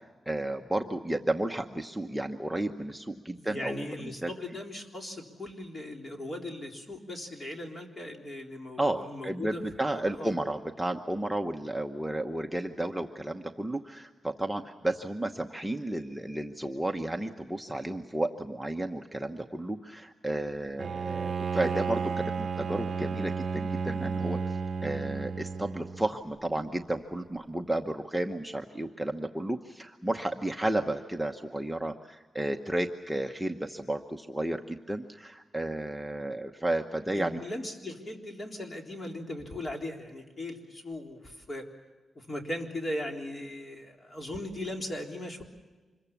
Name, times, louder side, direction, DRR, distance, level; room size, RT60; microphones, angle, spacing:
voice 1, 0.3-4.3 8.8-37.4, right 1 dB, 5° right, 3 dB, 1.0 m, -32 dB
voice 2, 3.3-9.6 10.1-10.3 37.2-41.7 42.2-45.4, left 1 dB, 35° left, 2 dB, 3.7 m, -38 dB
Bowed string instrument, 20.8-26.1, right 5 dB, 55° right, 0.7 m, -32 dB
26.0 x 22.0 x 7.2 m, 1.3 s
wide cardioid pair, 110°, 0 cm